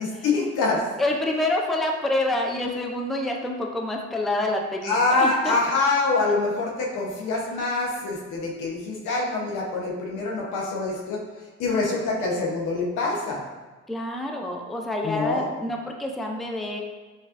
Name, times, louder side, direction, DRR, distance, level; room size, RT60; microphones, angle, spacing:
voice 1, 0.0-0.9 4.8-11.2 11.6-13.4 15.0-15.5, left 3 dB, 90° left, -2 dB, 0.9 m, -25 dB
voice 2, 1.0-5.6 13.9-16.8, left 1 dB, ahead, 1 dB, 0.4 m, -27 dB
5.2 x 2.4 x 2.5 m, 1.3 s
cardioid pair, 90°, 30 cm